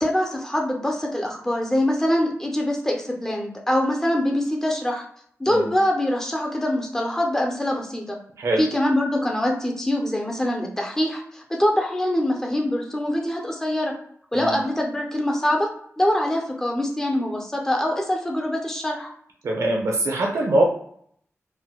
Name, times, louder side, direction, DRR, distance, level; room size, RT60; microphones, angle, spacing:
voice 1, 0.0-5.0 5.4-8.2 8.6-13.9 14.3-15.7 16.0-19.1, left 1 dB, 10° left, 0 dB, 0.6 m, -24 dB
voice 2, 19.4-20.6, right 1 dB, 85° right, -1 dB, 0.8 m, -22 dB
4.6 x 2.1 x 2.3 m, 0.64 s
wide cardioid pair, 140°, 5 cm